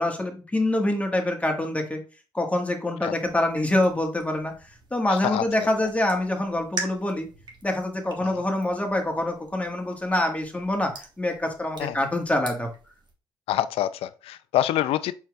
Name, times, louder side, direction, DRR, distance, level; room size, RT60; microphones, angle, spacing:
voice 1, 0.0-2.0 2.3-7.3 7.6-12.7, left 1 dB, 15° left, 1.4 m, -25 dB
sound 1, 3.2-13.1, right 3 dB, 45° right, 1.3 m, -43 dB
voice 2, 5.1-5.7 8.2-8.4 11.8-12.0 13.5-15.1, left 12 dB, 65° left, 0.3 m, -26 dB
4.6 x 4.4 x 2.3 m
hypercardioid pair, 50°, 10 cm